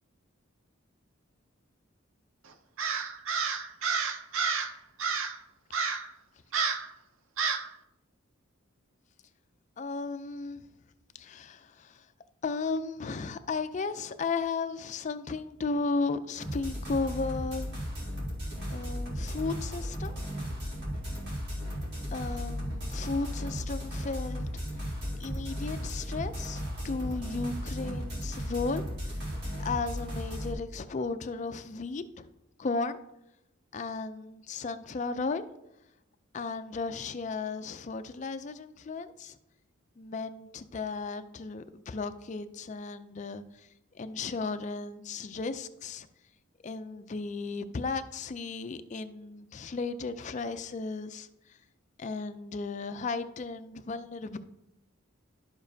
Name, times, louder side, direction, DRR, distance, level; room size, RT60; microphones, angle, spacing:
Crow, 2.8-4.7 5.0-5.4 5.7-6.1 6.5-6.9 7.4-7.7, right 5 dB, 70° right, 0.6 m, -30 dB
voice 1, 9.8-10.6 11.2-12.1 12.4-17.7 18.7-20.2 22.1-24.5 25.2-29.2 29.6-32.3 32.6-33.0 33.7-35.4 36.3-39.4 40.0-43.7 43.9-46.1 46.6-51.3 52.0-54.4, left 4 dB, 35° left, 11 dB, 0.3 m, -35 dB
sound 1, 16.4-30.5, equal, 50° right, 2.2 m, -35 dB
11.5 x 6.9 x 2.7 m, 0.88 s
head